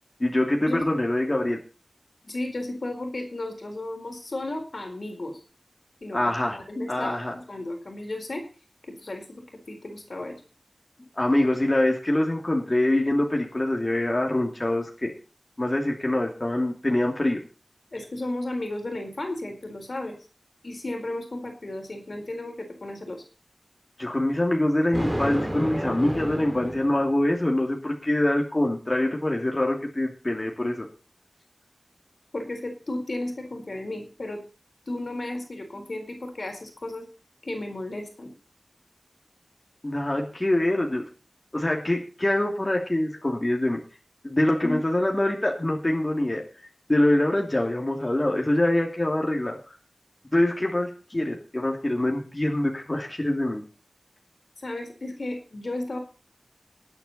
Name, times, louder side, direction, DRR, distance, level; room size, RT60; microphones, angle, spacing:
voice 1, 0.2-1.6 6.1-6.6 6.9-7.3 11.1-15.1 15.6-17.4 24.0-30.9 39.8-41.0 41.5-43.8 44.2-46.4 46.9-49.8 50.3-53.6, left 1 dB, 35° left, 0 dB, 2.9 m, -24 dB
voice 2, 2.2-5.4 6.0-8.4 8.9-10.4 17.9-20.2 20.6-23.2 32.3-34.4 34.9-37.1 37.4-38.3 44.6-44.8 54.6-56.0, left 1 dB, 70° left, 3 dB, 4.3 m, -34 dB
Thunder, 24.9-27.5, equal, 10° right, 2.6 m, -31 dB
19.5 x 9.0 x 4.3 m, 0.35 s
wide cardioid pair, 50°, 0 cm